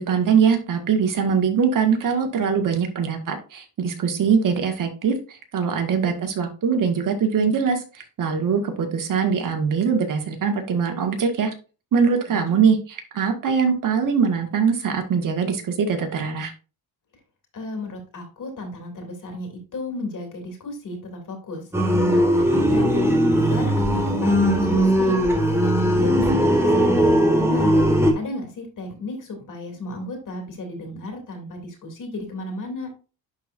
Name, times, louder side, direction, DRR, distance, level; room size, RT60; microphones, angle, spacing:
voice 1, 0.0-11.5 11.9-12.8 13.1-16.5, right 6 dB, 60° right, 5 dB, 1.9 m, -22 dB
voice 2, 17.5-21.6 22.1-25.2 25.6-27.8 28.1-32.9, left 2 dB, 55° left, 3 dB, 2.9 m, -34 dB
sound 1, 21.7-28.1, equal, 5° right, 1.6 m, -19 dB
11.0 x 4.3 x 2.6 m, 0.34 s
cardioid pair, 110°, 37 cm